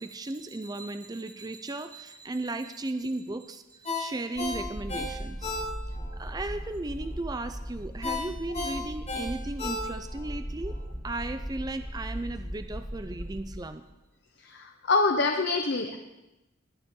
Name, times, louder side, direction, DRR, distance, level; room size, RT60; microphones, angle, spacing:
voice 1, 0.0-5.5 6.2-10.7 11.0-13.8, right 2 dB, 20° right, 9 dB, 0.5 m, -35 dB
Ringtone, 3.8-6.1 6.5-6.6 8.0-10.3 10.7-10.8, left 3 dB, 35° left, 5.3 m, -34 dB
sound 1, 4.4-13.5, equal, 5° right, 1.5 m, -38 dB
voice 2, 14.4-16.0, left 3 dB, 60° left, 4 dB, 0.9 m, -25 dB
20.5 x 8.9 x 3.8 m, 0.98 s
head